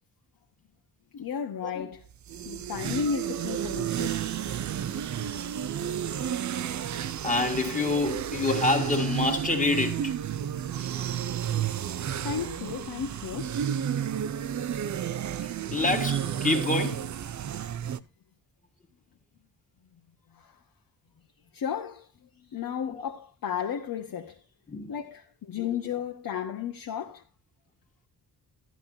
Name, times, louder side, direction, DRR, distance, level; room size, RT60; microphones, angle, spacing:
voice 1, 1.1-2.0 2.4-4.4 12.0-13.6 14.2-14.3 20.3-20.6 21.5-24.5 24.9-27.2, left 7 dB, 60° left, 1.3 m, -34 dB
sound 1, 2.1-18.0, right 9 dB, 50° right, 0.7 m, -31 dB
voice 2, 6.1-6.4 7.0-10.1 10.8-10.9 15.4-17.1 24.7-24.9 25.6-25.7, left 3 dB, 20° left, 2.0 m, -28 dB
13.5 x 11.0 x 2.8 m
cardioid pair, 120°, 38 cm